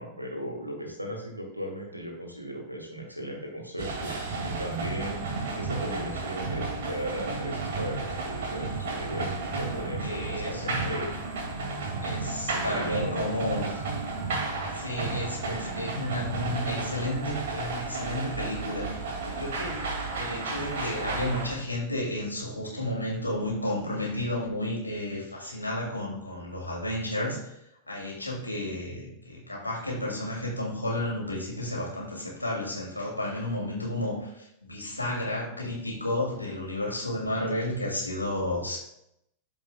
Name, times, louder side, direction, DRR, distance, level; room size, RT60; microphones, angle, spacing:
voice 1, 0.0-5.2 5.6-11.1 12.5-13.7, equal, 90° right, 1 dB, 1.8 m, -36 dB
sound 1, 3.8-21.5, right 3 dB, 55° right, 2.1 m, -33 dB
voice 2, 10.0-11.2 12.0-13.7 14.7-27.5 27.9-38.8, left 1 dB, 85° left, -2 dB, 2.6 m, -32 dB
13.5 x 5.3 x 2.4 m, 0.78 s
figure-of-eight pair, 90°, 0 cm